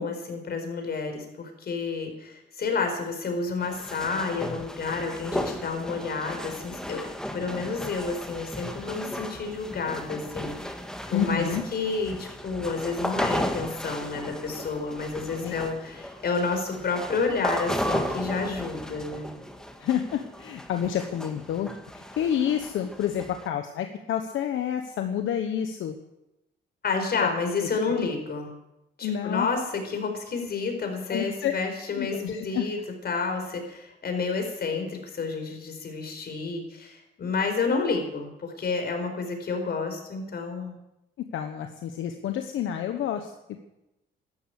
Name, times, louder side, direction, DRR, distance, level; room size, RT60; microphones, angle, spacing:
voice 1, 0.0-7.1 7.3-10.7 11.1-19.3 26.8-28.5 29.0-32.8 33.0-40.8, left 4 dB, 55° left, 5 dB, 4.6 m, -30 dB
sound 1, 3.6-23.5, equal, 5° left, 1.8 m, -35 dB
voice 2, 11.1-11.6 15.4-15.5 19.8-25.9 27.9-28.1 29.0-29.5 31.1-31.5 32.0-32.7 41.3-43.3, left 9 dB, 75° left, 6 dB, 1.2 m, -29 dB
13.0 x 12.5 x 8.2 m, 0.92 s
cardioid pair, 90°, 20 cm